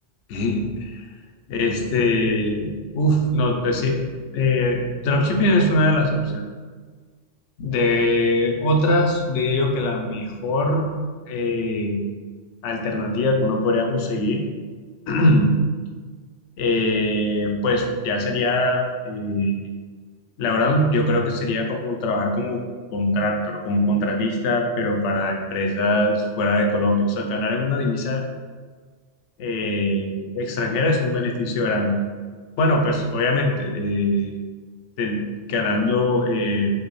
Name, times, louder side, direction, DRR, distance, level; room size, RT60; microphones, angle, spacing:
voice 1, 0.3-1.1 1.5-4.0 4.3-6.4 7.6-10.9 11.3-12.0 12.6-14.4 15.1-15.6 16.6-19.5 20.4-22.6 22.9-28.2 29.4-31.9 32.6-34.3 35.0-36.7, left 1 dB, 75° left, 1 dB, 0.9 m, -22 dB
4.6 x 2.2 x 3.1 m, 1.5 s
omnidirectional pair, 1.2 m